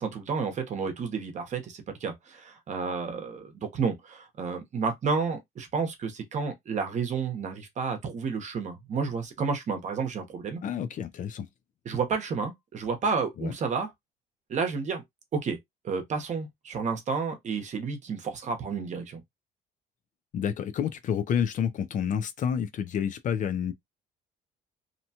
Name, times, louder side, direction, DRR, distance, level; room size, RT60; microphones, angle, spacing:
voice 1, 0.0-10.6 11.8-13.9 14.5-15.0 15.3-15.6 15.8-19.2, right 5 dB, 45° right, 0.9 m, -31 dB
voice 2, 10.6-11.5 13.4-13.5 20.3-23.7, left 8 dB, 50° left, 0.5 m, -29 dB
2.8 x 2.2 x 2.7 m
cardioid pair, 110°, 17 cm